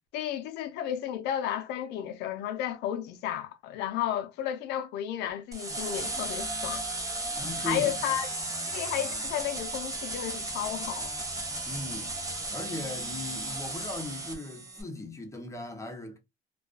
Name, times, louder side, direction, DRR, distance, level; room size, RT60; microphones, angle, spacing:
voice 1, 0.1-6.9 7.6-8.3 8.7-11.1, left 11 dB, 90° left, 0.5 m, -33 dB
sound 1, 5.5-14.8, right 2 dB, 20° right, 0.6 m, -35 dB
voice 2, 7.4-8.0 11.7-12.1 12.5-16.2, left 1 dB, 15° left, 0.7 m, -38 dB
2.3 x 2.3 x 2.3 m
cardioid pair, 110°, 17 cm